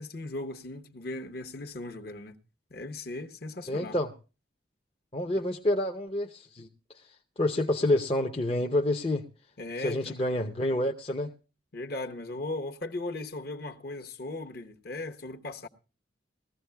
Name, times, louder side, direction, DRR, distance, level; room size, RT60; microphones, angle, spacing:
voice 1, 0.0-2.4 2.7-4.0 5.3-5.4 9.6-10.1 11.7-15.7, left 2 dB, 55° left, 1.1 m, -37 dB
voice 2, 3.7-4.1 5.1-6.7 7.4-9.2 9.8-11.3, left 1 dB, 30° left, 0.7 m, -28 dB
20.0 x 15.0 x 2.2 m
head